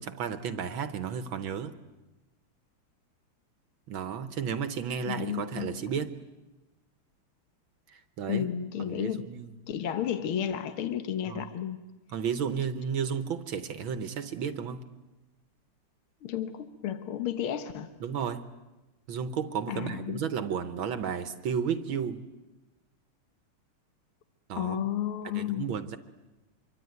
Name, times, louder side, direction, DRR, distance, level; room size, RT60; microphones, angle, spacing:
voice 1, 0.0-1.7 3.9-6.1 7.9-8.5 8.9-9.5 11.3-11.5 12.1-14.8 18.0-18.4 19.1-22.2 24.5-24.8 25.4-26.0, right 7 dB, 70° right, 11 dB, 1.8 m, -33 dB
voice 2, 5.1-5.9 8.3-9.3 9.7-11.8 16.2-17.9 19.7-20.3 24.5-25.7, left 10 dB, 75° left, 10 dB, 2.1 m, -32 dB
26.0 x 23.5 x 9.5 m, 1.1 s
omnidirectional pair, 2.4 m